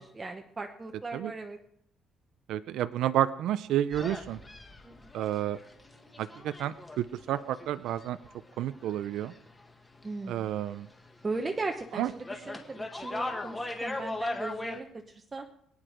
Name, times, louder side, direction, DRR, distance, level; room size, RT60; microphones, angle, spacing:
voice 1, 0.2-1.6 4.8-5.1 10.0-10.6 11.2-15.5, right 3 dB, 20° right, 3 dB, 0.9 m, -38 dB
voice 2, 2.5-4.4 5.1-5.6 6.2-8.2 8.6-9.3 10.3-10.9 11.9-12.1, right 12 dB, 75° right, 13 dB, 0.5 m, -30 dB
sound 1, 3.9-9.7 9.9-11.2 11.5-14.8, left 2 dB, 10° left, 1.6 m, -39 dB
23.0 x 9.7 x 5.0 m, 0.74 s
cardioid pair, 160°, 0 cm